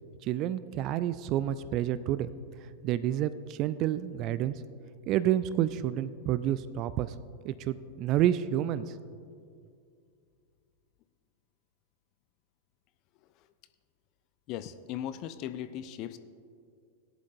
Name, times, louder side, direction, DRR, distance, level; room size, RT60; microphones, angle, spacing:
voice 1, 0.2-2.3 2.6-4.6 5.1-7.1 7.4-9.0, right 12 dB, 40° right, 15 dB, 0.3 m, -29 dB
voice 2, 14.5-16.2, left 11 dB, 40° left, 12 dB, 0.4 m, -38 dB
17.5 x 11.0 x 2.6 m, 2.3 s
figure-of-eight pair, 90°, 0 cm